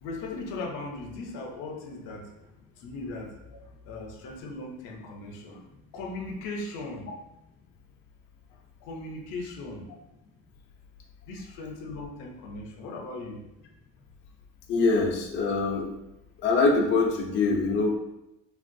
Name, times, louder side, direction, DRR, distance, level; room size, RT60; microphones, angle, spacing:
voice 1, 0.0-2.5 2.8-3.3 3.8-5.6 5.9-7.1 8.5-9.9 11.3-13.4, left 2 dB, 75° left, 2 dB, 0.7 m, -38 dB
voice 2, 14.7-15.9 16.4-18.0, left 3 dB, 35° left, -2 dB, 0.5 m, -24 dB
3.2 x 2.3 x 2.5 m, 0.89 s
cardioid pair, 150°, 32 cm